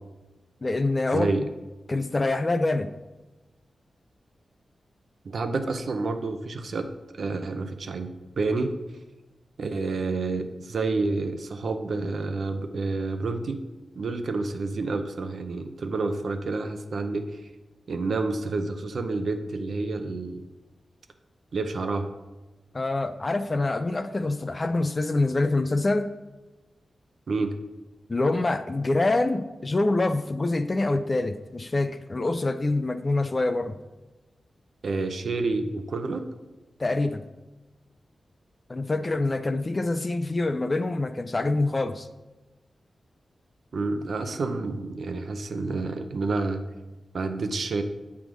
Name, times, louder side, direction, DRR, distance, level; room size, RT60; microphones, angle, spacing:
voice 1, 0.6-1.5 1.9-2.9 22.7-26.1 28.1-33.8 36.8-37.2 38.7-42.1, left 2 dB, 30° left, 10 dB, 0.4 m, -25 dB
voice 2, 1.1-1.4 5.2-6.9 7.2-8.1 8.4-8.8 9.6-13.6 13.9-17.4 17.9-20.4 21.5-22.1 27.3-27.5 34.8-36.2 43.7-46.6 47.1-47.8, right 3 dB, 70° right, 8 dB, 0.7 m, -29 dB
7.7 x 3.5 x 6.2 m, 1.1 s
wide cardioid pair, 95°, 0 cm